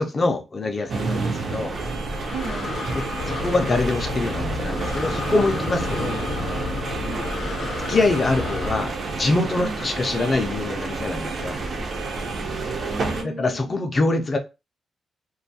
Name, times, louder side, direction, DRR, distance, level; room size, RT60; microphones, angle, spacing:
voice 1, 0.0-1.8 2.9-6.1 7.9-11.6 13.2-14.4, left 2 dB, 30° left, 0.4 m, -24 dB
sound 1, 0.9-13.2, right 3 dB, 45° right, 0.4 m, -29 dB
Breathing, 1.7-8.8, left 4 dB, 85° left, 0.5 m, -31 dB
voice 2, 2.3-2.9 7.0-7.3 9.6-9.8 12.3-13.7, right 4 dB, 75° right, 0.7 m, -35 dB
2.5 x 2.2 x 2.7 m
wide cardioid pair, 160°, 0 cm